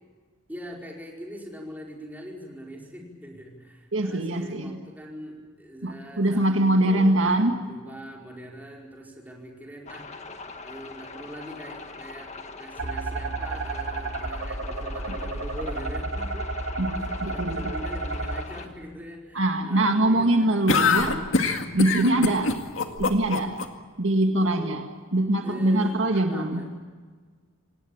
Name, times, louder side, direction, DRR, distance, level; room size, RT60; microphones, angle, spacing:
voice 1, 0.5-10.1 10.6-16.5 17.0-20.6 22.0-22.4 24.4-24.8 25.4-26.7, equal, 10° right, -1 dB, 5.0 m, -42 dB
voice 2, 3.9-4.8 5.8-7.6 16.8-17.7 19.3-21.2 21.7-22.5 23.0-23.5 24.0-26.6, right 1 dB, 65° right, 4 dB, 2.0 m, -23 dB
sound 1, 9.9-18.7, left 3 dB, 35° left, 1.8 m, -42 dB
sound 2, 12.8-18.4, right 2 dB, 85° right, 2.4 m, -31 dB
sound 3, 20.7-23.7, left 4 dB, 75° left, 2.1 m, -23 dB
27.0 x 19.0 x 8.8 m, 1.5 s
head